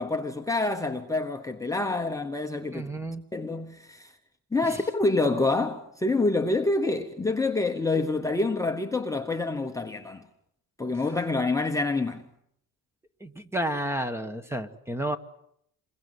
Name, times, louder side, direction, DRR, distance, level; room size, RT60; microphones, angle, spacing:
voice 1, 0.0-2.9 3.3-4.1 4.5-10.2 10.8-12.2, left 2 dB, 10° left, 1.0 m, -27 dB
voice 2, 2.7-3.2 4.6-4.8 13.2-15.2, right 1 dB, 5° right, 1.1 m, -31 dB
28.5 x 22.0 x 7.9 m
cardioid pair, 175°, 37 cm